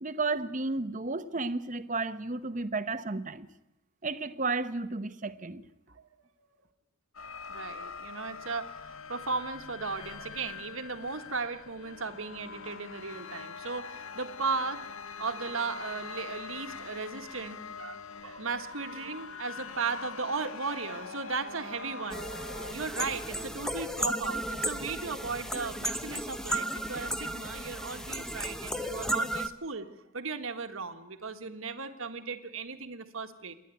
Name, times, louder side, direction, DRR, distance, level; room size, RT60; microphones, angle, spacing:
voice 1, 0.0-3.5 4.0-5.6, right 3 dB, 35° right, 1.0 m, -32 dB
voice 2, 6.0-6.5 7.5-14.8 15.2-33.5, right 4 dB, 75° right, 1.7 m, -36 dB
sound 1, 7.1-22.7, left 5 dB, 75° left, 0.8 m, -43 dB
sound 2, 22.1-29.5, right 1 dB, 5° left, 0.8 m, -34 dB
27.0 x 11.0 x 9.2 m
head